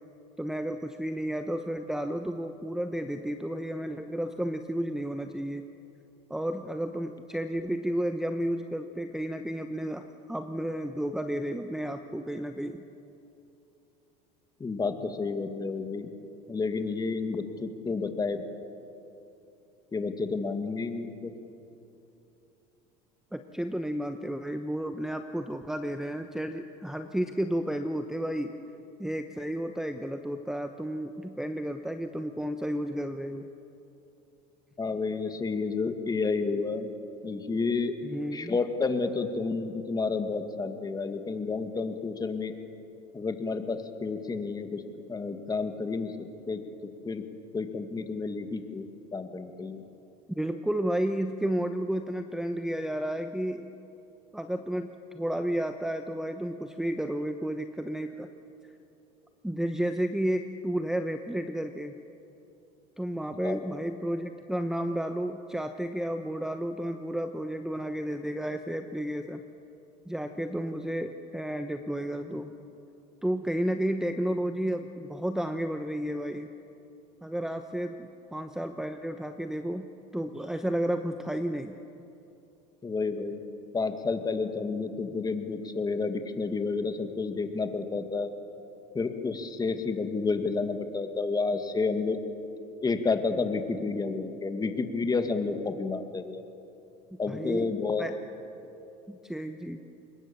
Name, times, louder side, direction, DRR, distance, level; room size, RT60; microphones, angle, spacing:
voice 1, 0.4-5.7 6.3-12.8 23.3-28.6 29.0-33.5 38.0-38.6 50.4-53.7 54.3-58.3 59.4-62.0 63.0-69.4 70.1-72.5 73.2-76.5 77.2-79.9 80.1-81.8 97.3-97.7 98.0-98.1 99.1-99.8, right 1 dB, 5° right, 7 dB, 1.0 m, -32 dB
voice 2, 14.6-16.1 16.5-18.5 19.9-21.3 34.8-36.9 37.2-37.9 38.3-42.5 43.1-46.6 47.0-47.2 47.5-49.8 63.4-63.7 82.8-83.4 83.7-88.3 88.9-92.2 92.8-96.4 97.2-98.0, left 4 dB, 20° left, 7 dB, 2.1 m, -30 dB
25.5 x 21.5 x 7.0 m, 2.8 s
supercardioid pair, 95°, 18 cm